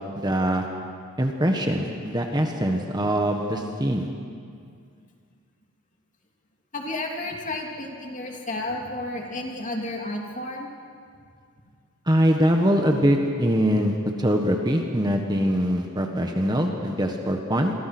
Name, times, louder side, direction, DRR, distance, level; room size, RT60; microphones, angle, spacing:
voice 1, 0.1-0.6 1.2-4.1 12.1-17.7, equal, 20° right, 3 dB, 1.5 m, -23 dB
voice 2, 6.7-10.7, left 2 dB, 35° left, 0 dB, 3.0 m, -32 dB
29.0 x 23.5 x 6.2 m, 2.2 s
head